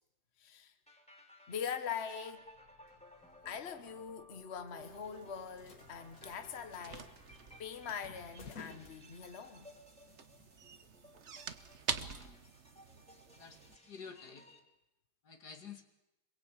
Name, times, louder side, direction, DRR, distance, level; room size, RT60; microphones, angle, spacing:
voice 1, 0.4-0.7 1.5-2.5 3.4-9.7, left 7 dB, 45° left, 8 dB, 1.6 m, -43 dB
sound 1, 0.9-14.6, equal, 5° left, 3.4 m, -59 dB
sound 2, 2.4-9.7, left 4 dB, 60° left, 2.4 m, -58 dB
sound 3, 4.8-13.8, right 6 dB, 50° right, 1.3 m, -47 dB
voice 2, 11.9-12.5 13.3-14.5 15.2-15.8, left 6 dB, 90° left, 5 dB, 3.1 m, -51 dB
26.0 x 22.0 x 8.8 m, 0.89 s
omnidirectional pair, 1.7 m